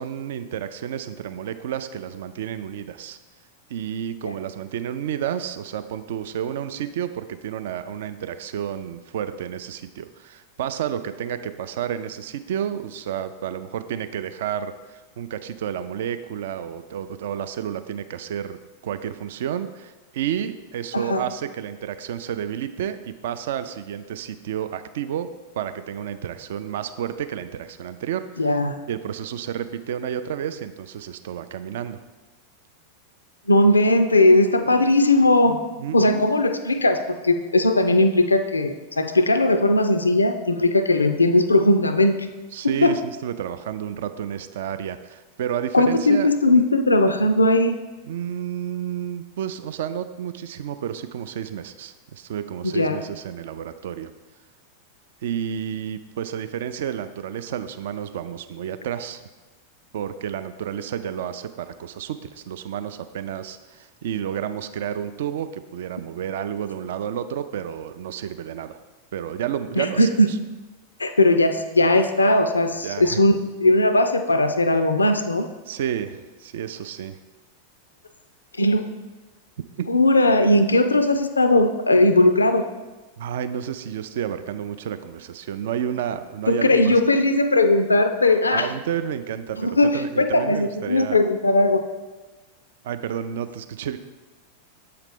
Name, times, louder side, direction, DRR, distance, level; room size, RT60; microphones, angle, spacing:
voice 1, 0.0-3.2 3.7-18.6 18.8-28.5 28.9-32.0 35.8-36.3 42.5-46.3 48.1-54.1 55.2-59.2 59.9-68.8 69.1-70.4 72.8-73.2 75.7-77.2 79.8-79.9 83.2-87.0 88.5-91.2 92.8-94.0, right 9 dB, 55° right, 11 dB, 0.3 m, -31 dB
voice 2, 20.9-21.2 28.4-28.8 33.5-35.6 35.9-42.2 42.8-43.0 45.7-47.8 52.6-53.0 69.8-70.3 71.0-73.4 73.6-75.5 78.6-78.9 79.9-82.6 86.5-88.7 89.6-91.8, left 2 dB, 80° left, 8 dB, 0.4 m, -18 dB
7.6 x 4.8 x 3.5 m, 1.2 s
figure-of-eight pair, 90°, 0 cm